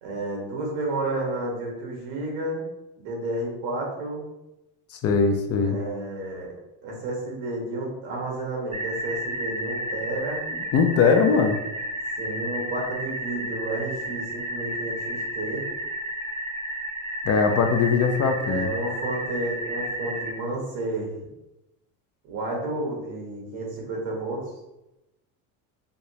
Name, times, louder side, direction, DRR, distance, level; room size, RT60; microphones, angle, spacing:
voice 1, 0.0-2.6 3.0-4.3 5.6-6.5 6.8-10.5 12.2-15.7 18.4-21.1 22.2-24.4, right 2 dB, 85° right, -1 dB, 1.4 m, -31 dB
voice 2, 4.9-5.8 10.7-11.6 17.2-18.7, left 5 dB, 35° left, 5 dB, 0.4 m, -21 dB
sound 1, 8.7-20.3, right 1 dB, 15° right, 0.6 m, -32 dB
3.4 x 2.8 x 2.8 m, 0.94 s
supercardioid pair, 100°, 44 cm